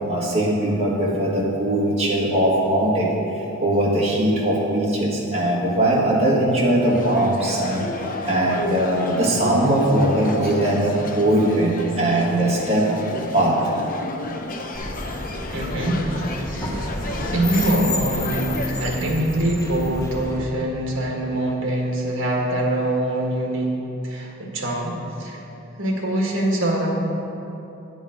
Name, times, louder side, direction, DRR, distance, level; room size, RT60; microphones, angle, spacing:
voice 1, 0.1-3.1 3.6-7.8 8.3-12.9 13.3-13.7, right 1 dB, 30° right, -5 dB, 1.7 m, -20 dB
sound 1, 6.8-19.0, left 2 dB, 40° left, 0.6 m, -33 dB
sound 2, 14.7-20.4, left 1 dB, 15° left, 1.1 m, -30 dB
voice 2, 15.5-16.3 16.9-17.0 17.3-23.7 24.0-25.4 25.8-26.9, right 1 dB, 60° right, -1 dB, 1.6 m, -24 dB
10.5 x 7.1 x 4.9 m, 3.0 s
head